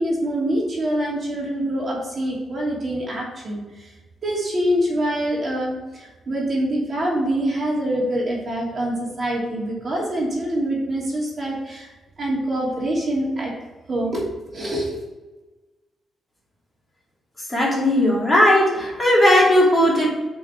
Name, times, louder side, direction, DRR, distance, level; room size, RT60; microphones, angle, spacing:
voice 1, 0.0-3.9 4.2-13.6 13.9-15.0, right 1 dB, 40° right, -3 dB, 2.8 m, -25 dB
voice 2, 17.5-20.1, left 1 dB, 15° left, -5 dB, 2.8 m, -17 dB
6.2 x 5.4 x 6.0 m, 1.2 s
cardioid pair, 115°, 0 cm